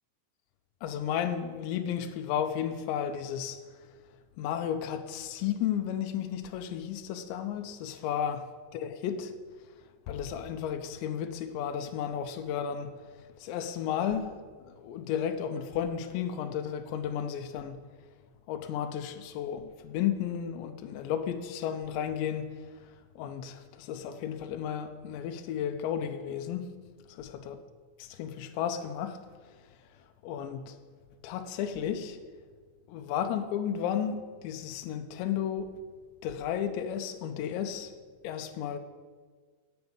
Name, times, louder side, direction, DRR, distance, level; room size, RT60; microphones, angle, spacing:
voice 1, 0.8-3.6 4.4-8.5 8.7-9.3 10.1-12.9 13.4-14.4 14.6-17.8 18.5-22.5 23.2-26.6 27.1-27.6 28.0-29.2 30.2-30.7 31.2-32.2 32.9-35.8 36.2-37.9 38.2-38.8, left 9 dB, 80° left, 3.0 m, -33 dB
9.3 x 8.2 x 7.1 m
omnidirectional pair, 5.2 m